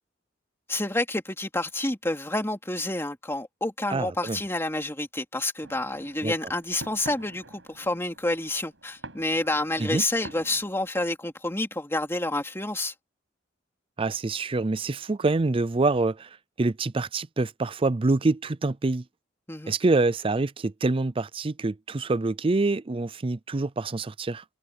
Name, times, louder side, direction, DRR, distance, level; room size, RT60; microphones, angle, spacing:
voice 1, 0.7-12.9 19.5-19.7, left 2 dB, 15° left, 2.6 m, -29 dB
voice 2, 3.9-4.4 6.2-6.3 9.8-10.0 14.0-16.3 16.6-19.0 19.7-24.4, right 3 dB, 30° right, 0.5 m, -26 dB
sound 1, 5.6-10.6, right 2 dB, 85° right, 7.0 m, -47 dB
head